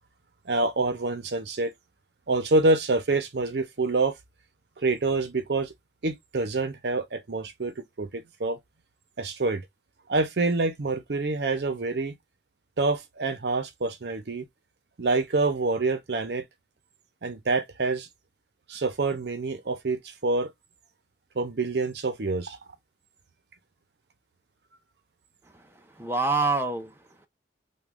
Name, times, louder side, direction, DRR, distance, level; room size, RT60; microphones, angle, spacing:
voice 1, 0.5-1.7 2.3-4.2 4.8-5.7 6.0-8.6 9.2-9.6 10.1-12.1 12.8-14.5 15.0-16.4 17.2-18.1 18.7-20.5 21.3-22.6, right 3 dB, 65° right, 0.6 m, -26 dB
voice 2, 25.4-27.3, right 3 dB, 15° right, 0.4 m, -28 dB
3.0 x 2.3 x 3.5 m
head